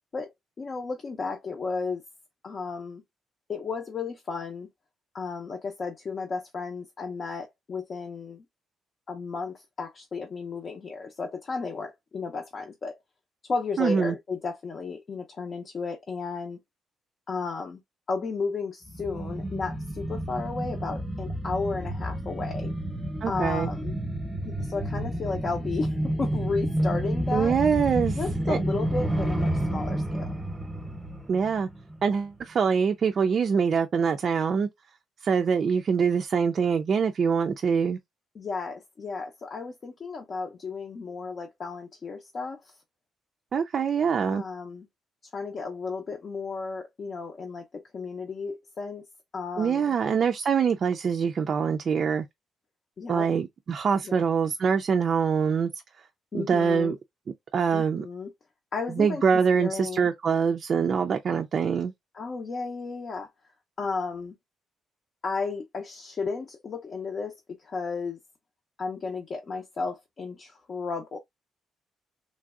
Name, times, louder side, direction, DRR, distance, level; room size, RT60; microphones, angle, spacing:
voice 1, 0.6-2.0 2.4-3.0 3.5-4.7 5.1-8.4 9.1-13.0 13.5-16.6 17.3-17.8 18.1-22.7 23.3-24.0 24.4-27.6 28.1-30.3 38.3-42.7 44.3-44.9 45.3-49.1 49.3-50.0 53.0-53.3 54.0-54.2 56.3-57.0 57.7-58.3 58.7-60.1 62.1-63.3 63.8-64.4 65.2-68.2 68.8-71.2, left 4 dB, 45° left, 0.6 m, -33 dB
voice 2, 13.8-14.2 23.2-23.7 27.3-28.2 28.5-28.6 31.3-31.7 32.0-34.7 35.2-38.0 43.5-44.4 49.6-52.2 53.1-55.7 56.3-57.0 57.5-58.1 59.0-61.9, right 6 dB, 50° right, 0.3 m, -24 dB
sound 1, 18.9-32.1 32.4-32.5, right 1 dB, 10° right, 0.8 m, -30 dB
3.2 x 2.6 x 2.3 m
cardioid pair, 90°, 0 cm